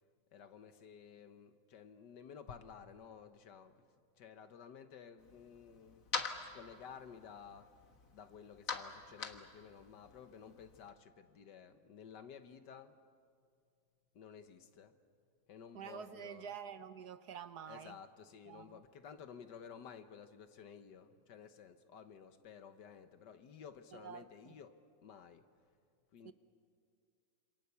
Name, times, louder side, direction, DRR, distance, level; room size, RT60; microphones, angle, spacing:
voice 1, 0.3-3.8 4.2-6.0 6.4-7.7 8.1-13.0 14.1-15.0 15.5-16.5 17.7-25.4 26.1-26.3, left 7 dB, 70° left, 1.7 m, -54 dB
sound 1, 5.2-10.9, left 5 dB, 50° left, 1.8 m, -45 dB
voice 2, 15.7-18.0 18.5-18.8 23.9-24.5 26.2-26.3, right 8 dB, 65° right, 1.3 m, -48 dB
27.5 x 26.5 x 6.9 m
omnidirectional pair, 2.0 m